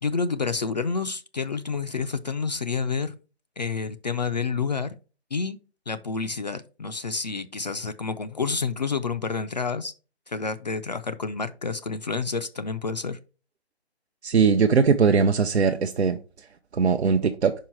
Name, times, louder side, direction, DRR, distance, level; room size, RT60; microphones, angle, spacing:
voice 1, 0.0-3.1 3.6-4.9 5.3-5.6 5.9-9.9 10.3-13.2, left 5 dB, 40° left, 0.4 m, -29 dB
voice 2, 14.2-16.2 16.7-17.5, right 5 dB, 80° right, 0.7 m, -20 dB
5.1 x 4.7 x 4.6 m
figure-of-eight pair, 150°, 33 cm